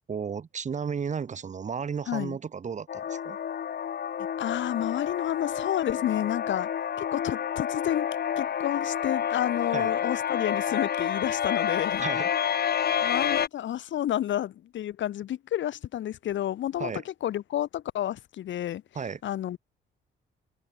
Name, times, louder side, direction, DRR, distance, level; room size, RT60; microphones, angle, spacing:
voice 1, 0.1-3.4 9.7-9.9 12.0-12.3 12.8-12.9 16.8-17.0 18.9-19.2, right 6 dB, 35° right, 1.1 m, -33 dB
voice 2, 2.1-2.4 4.2-6.7 7.0-12.1 13.0-19.6, left 12 dB, 70° left, 1.8 m, -30 dB
sound 1, 2.9-13.5, left 8 dB, 50° left, 1.8 m, -29 dB
open air
cardioid pair, 90°, 20 cm